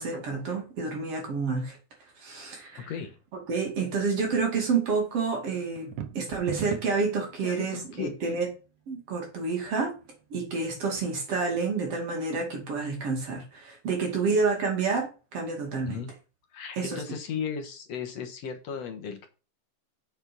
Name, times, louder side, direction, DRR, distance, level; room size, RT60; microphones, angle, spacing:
voice 1, 0.0-1.8 2.2-2.9 3.5-8.5 8.9-9.9 10.3-16.0 16.8-17.0, right 4 dB, 55° right, 1 dB, 3.3 m, -29 dB
voice 2, 2.9-3.2 7.4-8.1 14.2-14.4 15.9-16.1 16.5-19.3, left 7 dB, 65° left, 4 dB, 2.2 m, -36 dB
sound 1, 5.8-7.1, right 9 dB, 90° right, 2.4 m, -35 dB
6.9 x 6.8 x 6.0 m, 0.33 s
omnidirectional pair, 3.4 m